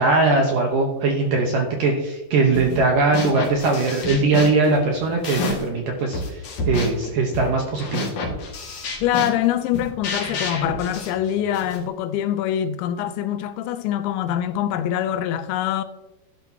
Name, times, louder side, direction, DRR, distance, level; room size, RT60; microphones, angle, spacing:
voice 1, 0.0-8.1, right 3 dB, 70° right, 2.1 m, -20 dB
sound 1, 2.5-2.8 3.1-5.8 6.1-11.8, left 2 dB, 50° left, 2.9 m, -30 dB
voice 2, 9.0-15.8, left 11 dB, 85° left, 2.9 m, -24 dB
12.0 x 11.5 x 2.9 m
omnidirectional pair, 5.3 m